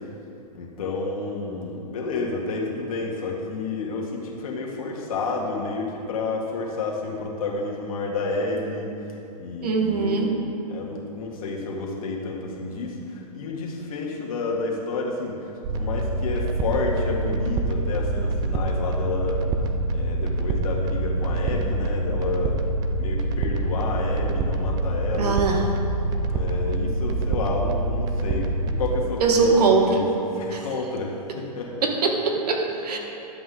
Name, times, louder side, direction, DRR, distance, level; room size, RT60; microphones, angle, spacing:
voice 1, 0.5-8.9 9.4-10.4 10.7-19.4 19.9-22.6 23.0-25.4 26.3-31.7 32.7-32.9, left 3 dB, 55° left, -2 dB, 1.8 m, -30 dB
voice 2, 9.6-10.3 25.2-25.6 29.2-30.0 30.5-30.6 31.8-33.0, right 4 dB, 70° right, 2 dB, 1.6 m, -21 dB
sound 1, 15.6-29.0, right 2 dB, 20° right, 0.5 m, -26 dB
11.5 x 7.8 x 3.9 m, 2.8 s
hypercardioid pair, 140°, 21 cm